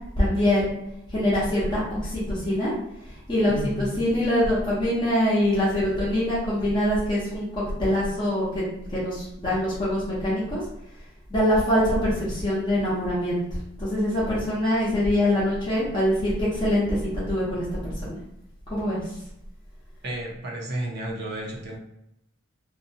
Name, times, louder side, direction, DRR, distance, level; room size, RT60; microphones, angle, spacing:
voice 1, 0.2-0.7 1.1-2.7 3.3-8.6 8.9-10.6 11.3-13.4 13.8-17.0 17.3-18.2 18.7-19.0, left 1 dB, 25° left, -9 dB, 0.7 m, -24 dB
voice 2, 3.5-4.0 20.0-21.8, right 1 dB, 55° right, -2 dB, 0.6 m, -32 dB
2.6 x 2.2 x 2.7 m, 0.81 s
head